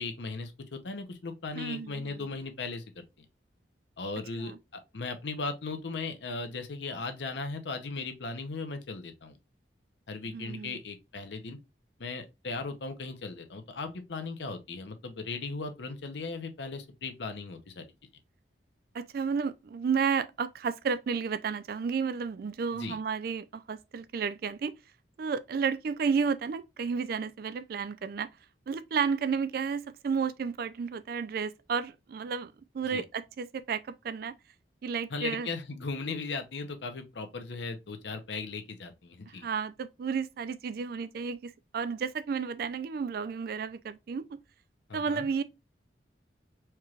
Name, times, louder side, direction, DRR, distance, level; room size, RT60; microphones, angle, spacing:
voice 1, 0.0-3.3 4.0-9.4 10.1-11.6 12.0-17.9 22.8-23.0 32.9-33.0 35.1-39.5 44.9-45.3, left 3 dB, 80° left, 0.7 m, -37 dB
voice 2, 1.6-2.3 4.3-4.6 10.3-10.8 18.9-24.7 25.2-28.3 28.7-34.3 34.8-35.5 39.3-44.4 44.9-45.4, right 6 dB, 55° right, 0.3 m, -32 dB
4.4 x 3.2 x 2.3 m
head